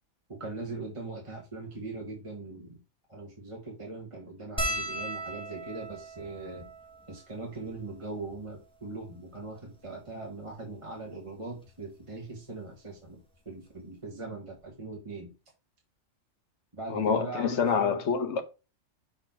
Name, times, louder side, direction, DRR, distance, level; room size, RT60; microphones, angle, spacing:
voice 1, 0.3-2.8 3.1-6.6 7.1-15.3 16.8-18.0, right 3 dB, 25° right, 1.7 m, -40 dB
sound 1, 4.6-9.2 9.9-10.0 10.2-10.4 11.7-11.9 13.3-13.4 13.7-13.9, right 1 dB, 5° left, 1.4 m, -38 dB
voice 2, 16.9-18.4, left 6 dB, 65° left, 1.3 m, -26 dB
6.4 x 4.4 x 4.5 m
omnidirectional pair, 1.3 m